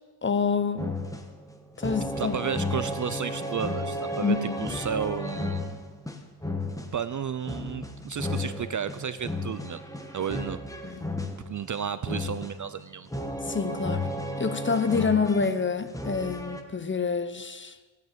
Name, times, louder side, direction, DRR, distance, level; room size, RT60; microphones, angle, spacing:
voice 1, 0.2-1.0 1.8-2.4 4.2-4.7 10.8-11.1 13.5-14.1 14.4-17.8, left 5 dB, 25° left, 0.7 m, -27 dB
sound 1, 0.8-16.6, left 1 dB, 5° left, 1.1 m, -34 dB
voice 2, 2.2-5.7 6.9-9.8 10.1-10.6 11.5-13.1, right 8 dB, 40° right, 0.4 m, -32 dB
15.5 x 9.3 x 6.6 m
wide cardioid pair, 135°, 49 cm